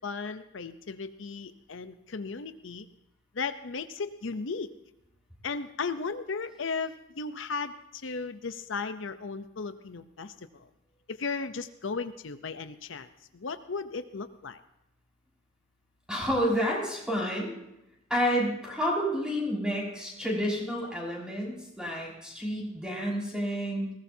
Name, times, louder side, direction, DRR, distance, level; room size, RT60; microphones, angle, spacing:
voice 1, 0.0-2.9 3.3-4.7 5.4-10.7 11.1-13.1 13.3-14.6, left 4 dB, 75° left, 10 dB, 0.7 m, -36 dB
voice 2, 16.1-17.6 18.1-23.9, equal, 5° right, -4 dB, 5.7 m, -30 dB
20.5 x 18.5 x 2.8 m, 0.87 s
head